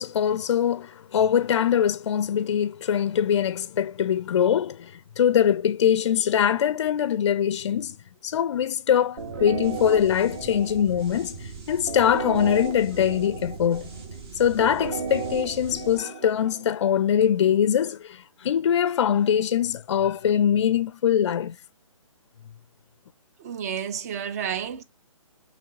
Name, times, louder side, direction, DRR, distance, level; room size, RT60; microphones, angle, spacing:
voice 1, 0.0-8.0 8.2-13.9 14.4-21.6, left 9 dB, 55° left, 0.4 m, -23 dB
sound 1, 9.2-16.8, right 5 dB, 45° right, 1.4 m, -35 dB
voice 2, 23.4-24.8, right 8 dB, 30° right, 0.4 m, -31 dB
5.6 x 3.1 x 2.6 m
figure-of-eight pair, 140°, 18 cm